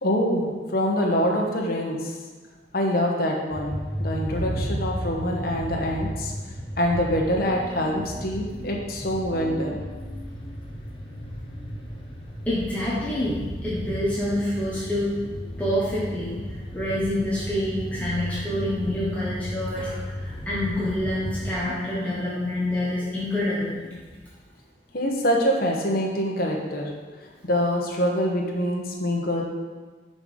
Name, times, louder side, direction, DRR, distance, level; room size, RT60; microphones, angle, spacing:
voice 1, 0.0-2.1 2.7-6.3 6.8-9.8 24.9-26.9 27.4-29.4, equal, 55° left, -1 dB, 1.3 m, -25 dB
sound 1, 3.5-21.6, equal, 30° left, 1.1 m, -34 dB
voice 2, 12.5-15.2 15.6-16.3 16.7-19.9 20.5-23.8, left 1 dB, 10° left, -8 dB, 1.2 m, -27 dB
5.8 x 5.4 x 6.4 m, 1.4 s
head